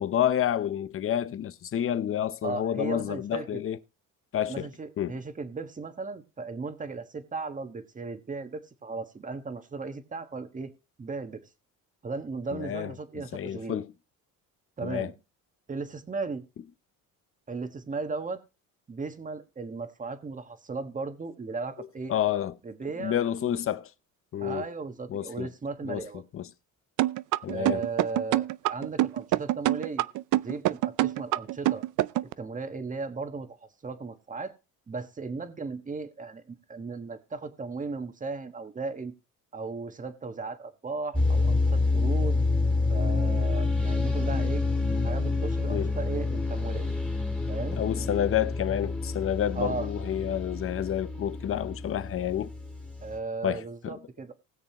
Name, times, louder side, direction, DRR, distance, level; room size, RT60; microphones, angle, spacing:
voice 1, 0.0-3.8 4.3-4.7 5.0-5.2 12.5-13.9 14.8-15.1 21.8-22.5 23.0-23.9 24.3-24.7 25.1-25.5 25.8-26.5 27.4-27.8 45.7-45.9 47.7-52.5 53.4-54.0, left 10 dB, 40° left, 0.7 m, -29 dB
voice 2, 2.4-3.6 4.4-10.7 11.0-11.4 12.0-13.8 14.8-15.1 15.7-16.4 17.5-18.4 18.9-22.1 22.6-23.2 24.4-26.2 27.5-30.1 30.4-31.9 32.2-34.5 34.9-39.1 39.5-42.4 42.9-44.6 45.0-46.9 47.5-47.8 49.5-49.9 53.0-54.3, right 4 dB, 25° right, 1.5 m, -36 dB
sound 1, 27.0-32.3, right 16 dB, 65° right, 0.5 m, -25 dB
sound 2, 41.1-53.2, left 3 dB, 5° left, 2.4 m, -28 dB
20.0 x 6.7 x 3.0 m
cardioid pair, 110°, 34 cm